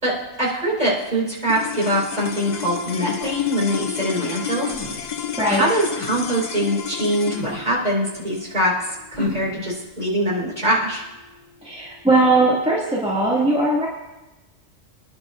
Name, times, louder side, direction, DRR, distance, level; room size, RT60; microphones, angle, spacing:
voice 1, 0.0-5.1 5.5-8.7 9.1-11.0, equal, 35° right, -5 dB, 4.9 m, -23 dB
sound 1, 1.5-11.9, left 8 dB, 50° left, 0.6 m, -32 dB
sound 2, 3.2-3.4 4.6-5.3 6.0-6.1 7.4-7.6 9.1-9.5, equal, 25° left, 4.4 m, -31 dB
voice 2, 11.6-13.9, right 2 dB, 5° right, -6 dB, 2.2 m, -19 dB
27.5 x 11.0 x 2.6 m, 1.1 s
omnidirectional pair, 1.3 m